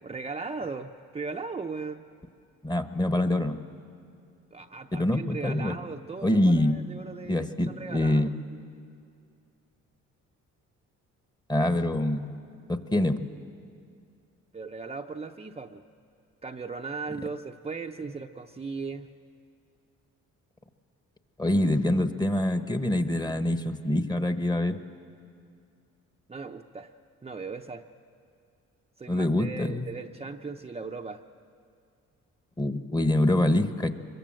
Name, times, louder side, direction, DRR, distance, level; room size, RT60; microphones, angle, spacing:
voice 1, 0.0-2.0 4.5-8.3 14.5-15.8 16.4-19.1 26.3-26.9 27.2-27.8 29.0-31.2, right 4 dB, 20° right, 3 dB, 0.7 m, -38 dB
voice 2, 2.6-3.6 4.9-5.7 6.2-6.8 7.3-8.3 11.5-12.3 12.7-13.2 21.4-24.8 29.1-29.9 32.6-33.9, left 1 dB, 15° left, 9 dB, 1.2 m, -25 dB
25.0 x 22.5 x 7.6 m, 2.4 s
cardioid pair, 90°, 30 cm